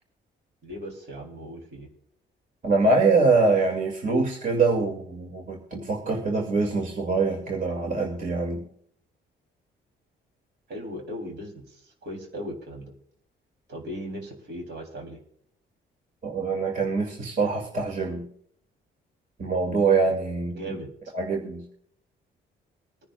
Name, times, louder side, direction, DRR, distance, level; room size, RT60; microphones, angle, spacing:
voice 1, 0.6-1.9 10.7-12.9 13.7-15.2 20.6-20.9, equal, 60° right, 2 dB, 3.4 m, -37 dB
voice 2, 2.6-8.7 16.2-18.3 19.4-20.6 21.1-21.6, right 3 dB, 40° right, 1 dB, 2.3 m, -24 dB
23.0 x 10.0 x 2.4 m, 0.65 s
cardioid pair, 90°, 20 cm